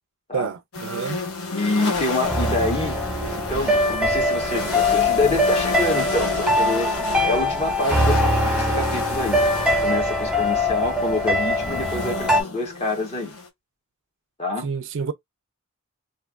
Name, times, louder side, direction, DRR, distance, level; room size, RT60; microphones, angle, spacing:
voice 1, 0.3-1.2 14.6-15.1, right 6 dB, 60° right, 0.4 m, -28 dB
sound 1, 0.7-13.5, left 3 dB, 75° left, 1.0 m, -32 dB
voice 2, 1.5-3.0 3.3-13.3 14.4-14.7, left 2 dB, 30° left, 1.4 m, -27 dB
sound 2, 2.2-12.4, left 1 dB, 5° right, 0.6 m, -22 dB
3.4 x 2.7 x 2.4 m
head